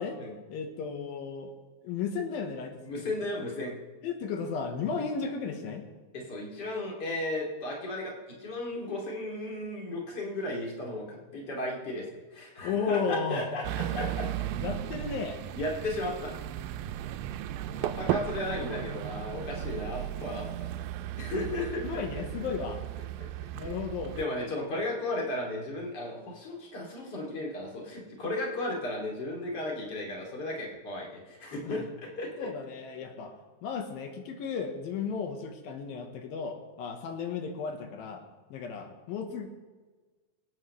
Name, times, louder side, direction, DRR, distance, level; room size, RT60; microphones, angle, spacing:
voice 1, 0.5-1.5 1.8-3.0 4.0-5.9 12.6-13.5 14.6-15.4 21.8-22.8 23.5-24.2 31.6-31.8 32.4-33.3 33.6-39.5, left 5 dB, 85° left, 4 dB, 2.9 m, -34 dB
voice 2, 2.8-3.7 6.1-8.1 8.4-14.3 15.5-16.3 17.7-20.5 21.2-22.0 23.6-23.7 24.1-32.5, left 1 dB, 30° left, -2 dB, 2.9 m, -35 dB
sound 1, 13.6-24.3, right 12 dB, 85° right, 2.2 m, -35 dB
25.5 x 8.9 x 3.2 m, 1.3 s
omnidirectional pair, 4.1 m